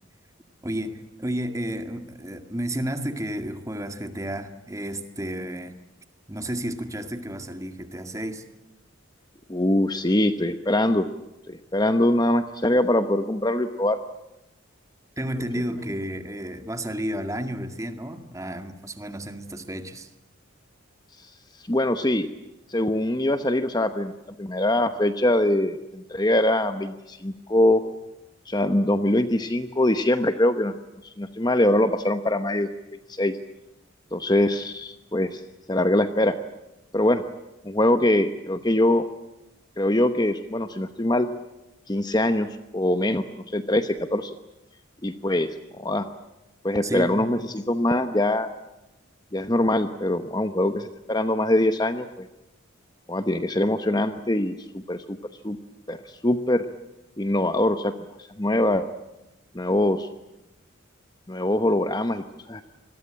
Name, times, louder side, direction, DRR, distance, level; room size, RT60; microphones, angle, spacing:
voice 1, 0.6-5.8 6.3-8.4 15.2-20.1 46.8-47.3, right 1 dB, 15° right, 7 dB, 2.0 m, -32 dB
voice 2, 9.5-11.1 11.5-14.0 21.2-21.3 21.7-22.3 22.7-24.1 24.4-27.8 28.5-30.7 31.0-32.7 33.1-33.3 34.1-35.4 35.7-36.4 36.9-37.2 37.6-39.1 39.8-41.3 41.9-43.2 43.5-44.4 45.0-46.1 46.6-48.5 49.3-52.3 53.1-55.2 55.4-55.6 55.9-56.7 57.2-57.9 58.4-58.9 59.5-60.1 61.3-62.6, left 1 dB, 20° left, 9 dB, 0.9 m, -23 dB
26.5 x 21.5 x 8.8 m, 0.92 s
head